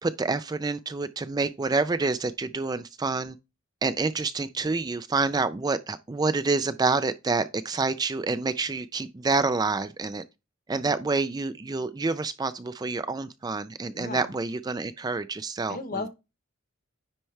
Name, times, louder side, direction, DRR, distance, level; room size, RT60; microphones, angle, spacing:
voice 1, 0.0-3.4 3.8-10.2 10.7-16.1, right 3 dB, 20° right, 0.3 m, -28 dB
voice 2, 13.9-14.3 15.7-16.1, left 3 dB, 40° left, 1.0 m, -34 dB
10.0 x 4.4 x 3.3 m
head